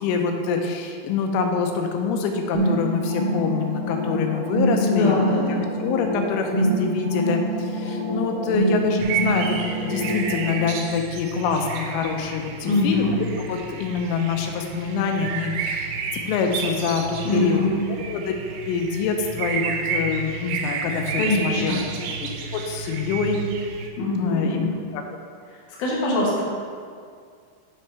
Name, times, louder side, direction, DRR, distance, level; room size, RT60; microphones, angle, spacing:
voice 1, 0.0-5.2 5.8-16.0 16.3-17.6 18.1-18.2 18.6-21.8 22.2-23.4 24.2-25.0, left 5 dB, 85° left, 3 dB, 3.2 m, -25 dB
sound 1, 2.5-10.5, right 1 dB, 70° right, 2.0 m, -25 dB
voice 2, 4.8-5.7 12.6-13.2 17.2-17.8 21.2-21.8 24.0-24.7 25.8-26.4, left 2 dB, 65° left, -5 dB, 2.0 m, -23 dB
sound 2, 9.0-23.9, right 5 dB, 85° right, 3.0 m, -31 dB
9.7 x 5.8 x 3.4 m, 2.2 s
omnidirectional pair, 5.6 m